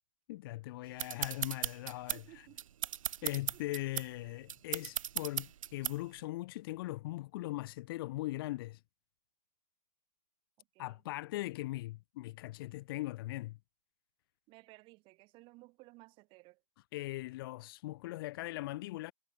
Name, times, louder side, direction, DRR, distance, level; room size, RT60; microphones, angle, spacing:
voice 1, 0.3-2.2 3.2-8.8 10.8-13.6 16.9-19.1, left 18 dB, 35° left, 2.0 m, -40 dB
sound 1, 1.0-6.2, right 10 dB, 50° right, 0.5 m, -38 dB
voice 2, 2.1-2.6 3.2-3.8 10.6-11.0 14.5-16.6, right 23 dB, 25° right, 7.2 m, -57 dB
figure-of-eight pair, 140°, 21 cm